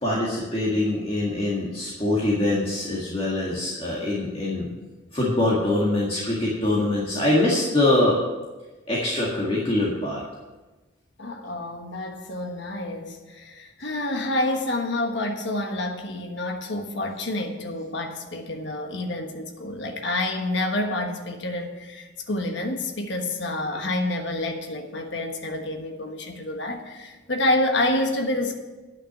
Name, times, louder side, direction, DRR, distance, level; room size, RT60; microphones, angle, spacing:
voice 1, 0.0-4.7 5.1-8.2 8.9-10.2 23.7-23.8, left 1 dB, 30° left, -5 dB, 1.8 m, -23 dB
voice 2, 11.2-28.5, left 1 dB, 65° left, 3 dB, 1.3 m, -28 dB
9.8 x 6.0 x 7.7 m, 1.2 s
head